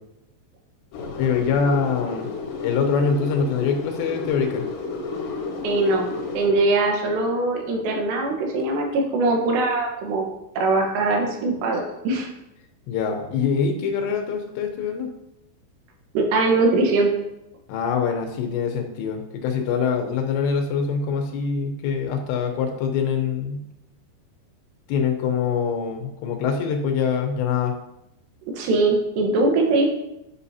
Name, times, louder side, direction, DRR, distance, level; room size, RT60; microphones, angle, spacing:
sound 1, 0.9-6.5, left 3 dB, 70° left, 2.2 m, -32 dB
voice 1, 1.2-2.3 2.6-4.6 12.9-15.1 17.7-23.6 24.9-27.8, left 6 dB, 85° left, 4 dB, 3.2 m, -24 dB
voice 2, 5.6-10.3 10.6-12.3 16.1-17.1 28.5-29.9, right 2 dB, 80° right, 1 dB, 3.4 m, -21 dB
11.5 x 5.7 x 2.8 m, 0.87 s
omnidirectional pair, 4.9 m